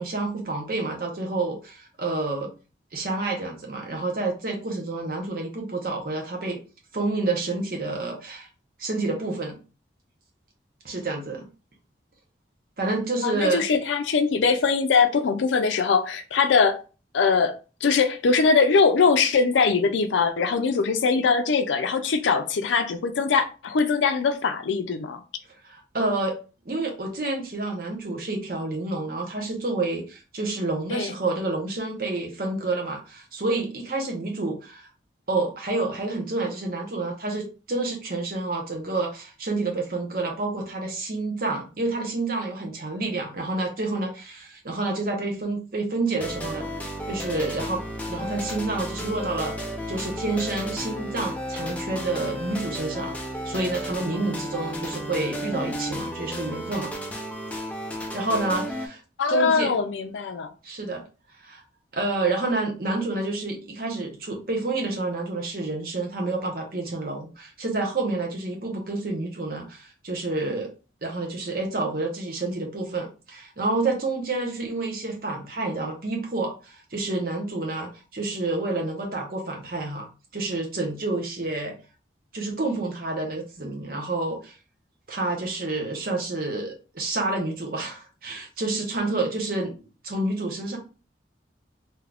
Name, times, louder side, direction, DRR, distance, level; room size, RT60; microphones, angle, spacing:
voice 1, 0.0-2.5 2.9-6.6 6.9-8.5 8.8-9.6 10.8-11.5 12.8-13.6 25.6-26.4 26.6-34.9 35.3-46.7 47.1-49.6 49.9-53.2 53.4-56.9 58.1-59.0 59.3-59.7 60.6-61.0 61.4-61.6 61.9-70.7 71.0-80.1 80.3-81.7 82.3-84.5 85.1-89.7 90.0-90.8, right 2 dB, 50° right, 0.8 m, -29 dB
voice 2, 13.2-16.8 17.1-17.5 17.8-25.2 30.9-31.1 59.2-60.5, left 5 dB, 85° left, 0.4 m, -22 dB
sound 1, 46.2-58.9, equal, 10° left, 0.4 m, -33 dB
2.7 x 2.4 x 3.4 m
head